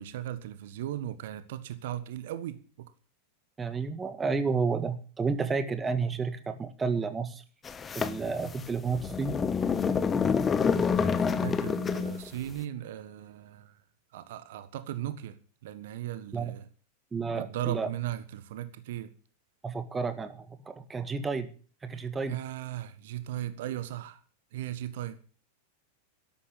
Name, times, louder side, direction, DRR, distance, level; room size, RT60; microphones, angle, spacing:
voice 1, 0.0-2.6 10.8-13.8 14.1-15.4 15.6-16.7 17.4-19.1 21.9-24.2 24.5-25.2, right 12 dB, 55° right, 1.5 m, -37 dB
voice 2, 3.6-7.4 7.9-9.4 16.3-16.5 17.1-17.9 19.6-21.5 21.8-22.4, right 4 dB, 15° right, 1.7 m, -31 dB
sound 1, 7.7-12.3, left 6 dB, 20° left, 1.2 m, -28 dB
13.0 x 11.5 x 8.4 m
figure-of-eight pair, 90°, 0 cm